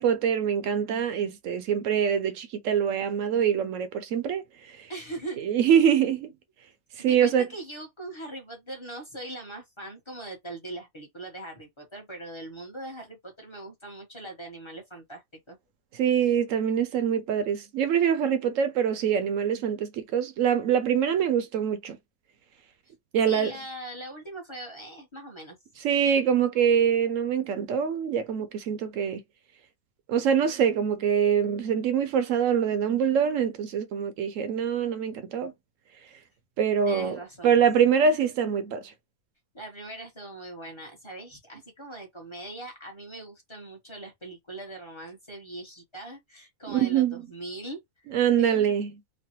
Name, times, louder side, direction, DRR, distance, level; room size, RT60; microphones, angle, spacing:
voice 1, 0.0-4.9 5.4-6.3 7.0-7.5 15.9-22.0 23.1-23.5 25.8-29.2 30.1-35.5 36.6-38.9 46.7-47.2 48.1-48.9, right 8 dB, 70° right, 0.9 m, -24 dB
voice 2, 4.9-5.4 7.1-15.6 23.2-25.6 36.9-37.6 39.5-47.8 48.4-48.7, right 1 dB, 25° left, 0.8 m, -41 dB
3.1 x 2.1 x 2.8 m
omnidirectional pair, 1.5 m